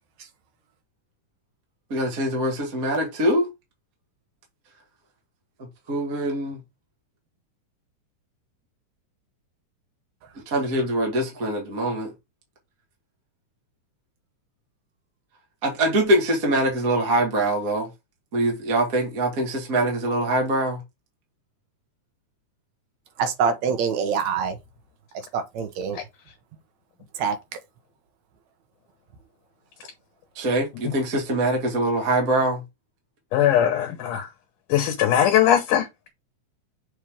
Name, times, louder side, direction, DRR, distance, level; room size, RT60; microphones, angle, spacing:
voice 1, 1.9-3.5 5.9-6.6 10.5-12.1 15.6-17.9 18.3-20.8 30.4-32.6, right 1 dB, 30° right, 2.3 m, -23 dB
voice 2, 23.2-24.6 25.3-26.0 27.2-27.4, right 6 dB, 65° right, 2.3 m, -24 dB
voice 3, 33.3-34.3 34.7-36.1, left 10 dB, 75° left, 2.6 m, -20 dB
7.3 x 4.6 x 3.6 m
omnidirectional pair, 3.9 m